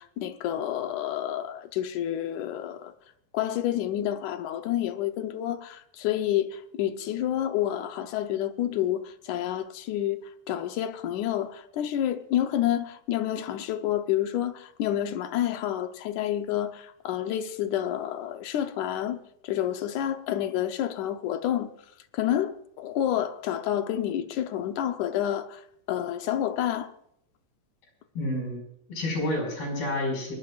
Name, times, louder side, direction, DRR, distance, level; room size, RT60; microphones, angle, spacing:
voice 1, 0.0-2.9 3.3-10.2 10.5-21.7 22.1-25.6 25.9-26.9, left 11 dB, 70° left, 2.1 m, -29 dB
voice 2, 28.2-28.6 28.9-30.3, left 1 dB, 85° left, 7.7 m, -29 dB
23.0 x 20.5 x 2.5 m
omnidirectional pair, 4.1 m